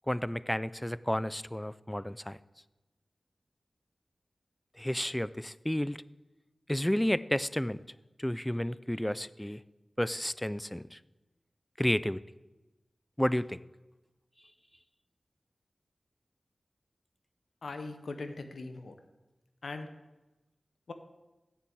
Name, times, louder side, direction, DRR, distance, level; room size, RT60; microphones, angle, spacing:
voice 1, 0.1-2.4 4.8-6.0 6.7-7.8 8.2-9.6 10.0-11.0 11.8-12.2 13.2-13.6, equal, 10° left, 17 dB, 0.4 m, -31 dB
voice 2, 17.6-18.9 19.6-19.9 20.9-21.0, left 3 dB, 85° left, 7 dB, 0.8 m, -40 dB
7.4 x 6.9 x 7.9 m, 1.1 s
wide cardioid pair, 55°, 0 cm